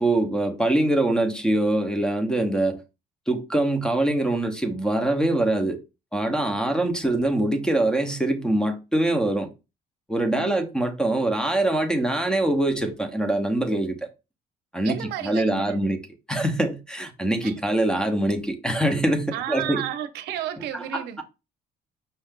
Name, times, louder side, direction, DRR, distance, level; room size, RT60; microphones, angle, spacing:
voice 1, 0.0-2.8 3.3-5.8 6.1-9.5 10.1-14.1 14.7-16.0 16.3-19.9 20.7-21.2, right 1 dB, 5° left, 0.8 m, -24 dB
voice 2, 14.8-16.0 17.4-17.6 19.3-21.2, right 11 dB, 80° right, 0.6 m, -32 dB
5.5 x 2.5 x 3.6 m
cardioid pair, 110°, 17 cm